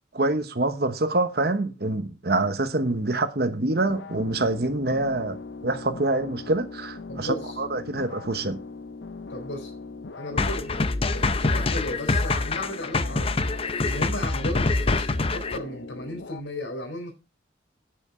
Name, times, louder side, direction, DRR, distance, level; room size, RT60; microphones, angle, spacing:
voice 1, 0.1-5.4 5.6-8.6, right 2 dB, 55° right, 1.0 m, -26 dB
sound 1, 3.8-16.4, left 4 dB, 70° left, 0.6 m, -40 dB
voice 2, 7.1-7.6 9.3-9.7 10.1-17.1, left 1 dB, 85° left, 4.2 m, -35 dB
sound 2, 10.4-15.6, left 3 dB, 30° left, 0.6 m, -25 dB
10.0 x 9.9 x 4.3 m
head